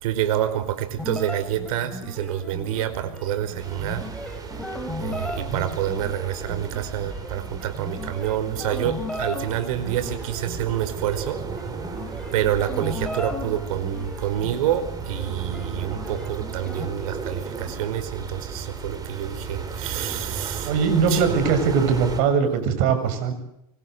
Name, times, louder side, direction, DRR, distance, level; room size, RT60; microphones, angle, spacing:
voice 1, 0.0-4.0 5.0-11.4 12.3-20.8 21.1-21.5, right 11 dB, 70° right, 12 dB, 4.8 m, -27 dB
sound 1, 1.0-16.8, left 1 dB, 5° left, 5.0 m, -36 dB
sound 2, 3.6-22.2, right 4 dB, 20° right, 5.1 m, -35 dB
voice 2, 20.7-23.3, right 6 dB, 55° right, 9 dB, 7.4 m, -21 dB
26.5 x 24.0 x 8.1 m, 0.82 s
supercardioid pair, 125°, 19 cm